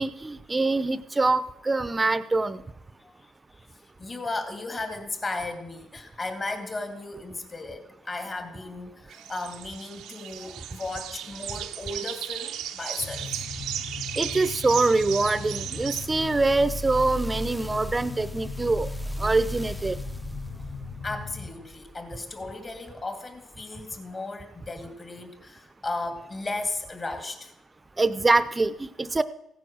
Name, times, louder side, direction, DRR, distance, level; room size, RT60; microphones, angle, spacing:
voice 1, 0.0-2.6 14.2-18.9 19.2-20.0 28.0-29.2, right 3 dB, 20° right, 14 dB, 0.7 m, -24 dB
voice 2, 3.0-3.7 4.0-13.4 20.5-20.6 21.0-27.5, left 2 dB, 30° left, 5 dB, 2.3 m, -35 dB
sound 1, 9.1-16.0, right 11 dB, 90° right, 0.8 m, -36 dB
sound 2, 13.0-21.5, left 5 dB, 55° left, 2.7 m, -39 dB
sound 3, 15.9-22.4 23.0-23.1, equal, 10° left, 0.8 m, -37 dB
15.5 x 9.3 x 6.4 m, 0.82 s
cardioid pair, 90°, 0 cm